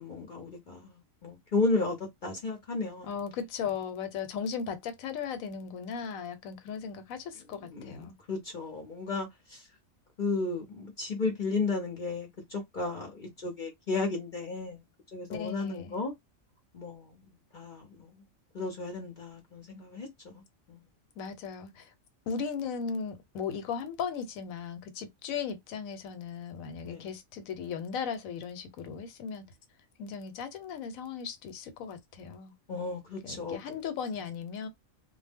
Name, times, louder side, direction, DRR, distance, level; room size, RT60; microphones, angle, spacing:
voice 1, 0.0-2.0 2.2-3.1 7.7-9.6 10.2-14.8 15.1-16.1 16.7-18.1 18.5-20.4 20.7-20.8 26.8-27.1 32.7-33.6, left 3 dB, 45° left, 0.7 m, -34 dB
voice 2, 3.0-8.2 15.3-16.0 21.2-21.9 22.3-29.5 30.0-32.5 33.2-34.7, left 6 dB, 85° left, 1.1 m, -37 dB
2.3 x 2.1 x 3.4 m
omnidirectional pair, 1.4 m